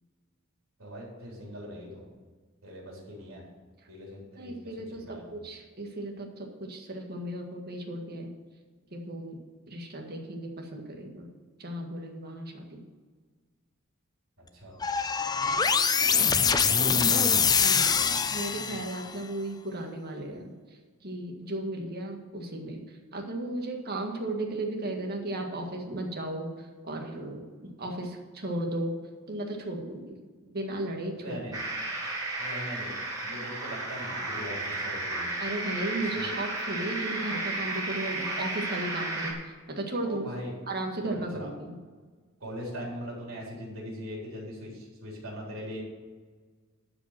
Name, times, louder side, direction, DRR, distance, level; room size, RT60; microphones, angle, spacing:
voice 1, 0.8-2.1 2.6-3.4 3.9-5.3 14.4-14.8 16.8-17.4 31.2-31.6 32.4-32.9 33.2-35.3 36.0-36.3 40.0-40.5 41.1-41.5 42.4-45.8, equal, 75° right, -3 dB, 4.0 m, -41 dB
voice 2, 4.4-8.3 8.9-9.4 9.7-11.3 11.6-12.8 16.4-20.5 21.0-22.8 23.1-29.0 29.3-30.2 30.5-31.4 35.4-40.3 40.7-41.8, right 1 dB, 50° right, 2 dB, 1.8 m, -35 dB
sound 1, 14.8-19.1, left 6 dB, 20° left, 0.4 m, -24 dB
sound 2, 31.5-39.3, right 2 dB, 20° right, 2.8 m, -33 dB
11.5 x 5.2 x 7.6 m, 1.5 s
head